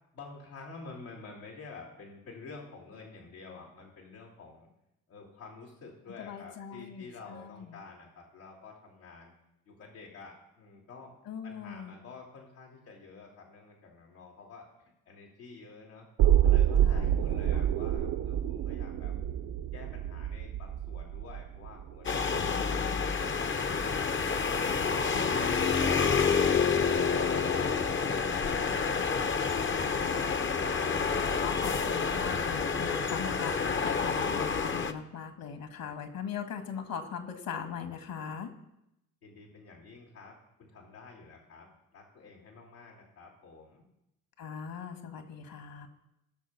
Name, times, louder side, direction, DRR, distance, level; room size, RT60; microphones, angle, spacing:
voice 1, 0.1-4.7 5.1-9.3 9.6-11.1 11.4-16.1 16.4-19.1 19.7-24.1 39.2-43.8, left 4 dB, 85° left, -8 dB, 3.4 m, -50 dB
voice 2, 6.2-7.8 11.3-12.0 16.8-17.6 22.4-23.0 25.1-25.5 27.0-27.6 30.8-38.5 44.4-45.9, left 7 dB, 55° left, 6 dB, 2.1 m, -41 dB
sound 1, 16.2-22.2 22.5-22.6, right 11 dB, 60° right, 0.9 m, -27 dB
sound 2, 22.0-34.9, left 5 dB, 30° left, 0.9 m, -28 dB
17.5 x 6.5 x 4.2 m, 0.86 s
hypercardioid pair, 50°, 42 cm